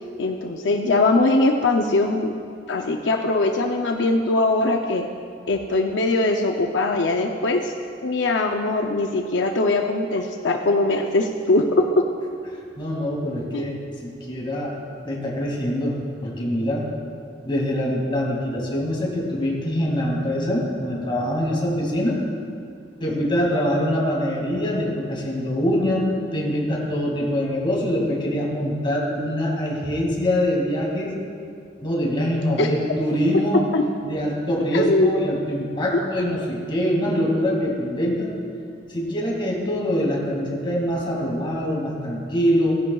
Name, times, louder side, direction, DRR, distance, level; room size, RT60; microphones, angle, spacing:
voice 1, 0.2-2.3 2.7-5.1 5.5-7.7 8.0-12.0 13.5-13.6 32.6-32.7 33.3-33.4 33.7-33.8 34.7-35.2 35.9-36.0, left 2 dB, 75° left, 3 dB, 0.6 m, -21 dB
voice 2, 12.5-14.7 15.0-16.9 17.4-22.2 23.0-31.1 31.8-33.6 34.1-38.3 38.9-42.8, equal, 25° left, -3 dB, 2.3 m, -24 dB
17.0 x 10.5 x 2.4 m, 2.4 s
head